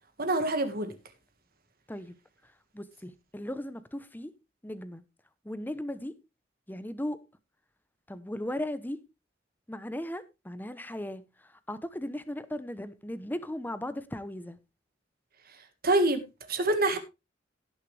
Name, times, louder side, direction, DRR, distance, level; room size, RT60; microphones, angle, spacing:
voice 1, 0.2-0.9 15.8-16.2 16.5-17.0, right 2 dB, 55° right, 1.8 m, -25 dB
voice 2, 2.7-4.3 4.6-5.0 5.4-6.1 6.7-7.2 8.1-9.0 9.7-11.2 11.7-14.6, left 1 dB, 10° left, 0.9 m, -37 dB
17.5 x 6.6 x 3.4 m
head